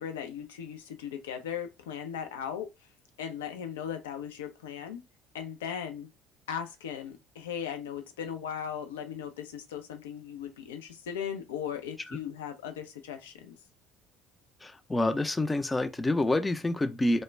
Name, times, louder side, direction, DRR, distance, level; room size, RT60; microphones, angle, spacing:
voice 1, 0.0-2.7 3.2-5.0 5.3-6.1 6.5-13.5, left 8 dB, 75° left, 0.4 m, -38 dB
voice 2, 14.6-17.2, left 2 dB, 15° left, 0.4 m, -27 dB
2.2 x 2.1 x 3.2 m
figure-of-eight pair, 55°, 0 cm